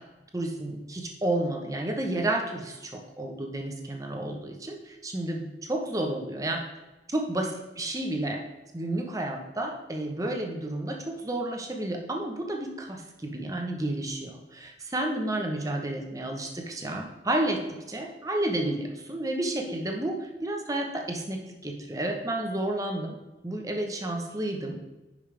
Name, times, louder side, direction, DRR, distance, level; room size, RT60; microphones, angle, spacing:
voice 1, 0.3-6.6 7.1-7.5 7.8-8.4 8.7-23.2 23.4-24.8, right 1 dB, 20° right, 2 dB, 1.0 m, -31 dB
10.0 x 5.4 x 3.4 m, 1.1 s
head